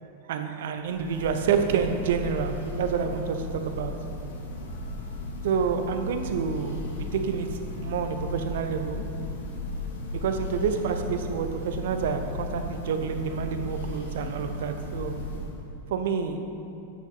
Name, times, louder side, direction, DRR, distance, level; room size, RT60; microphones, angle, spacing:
voice 1, 0.2-4.1 5.4-9.1 10.1-15.2 15.9-16.5, right 6 dB, 55° right, 7 dB, 0.9 m, -28 dB
Church bell, 0.8-15.7, left 2 dB, 65° left, 2.1 m, -36 dB
14.0 x 10.0 x 4.0 m, 2.9 s
figure-of-eight pair, 90°, 0 cm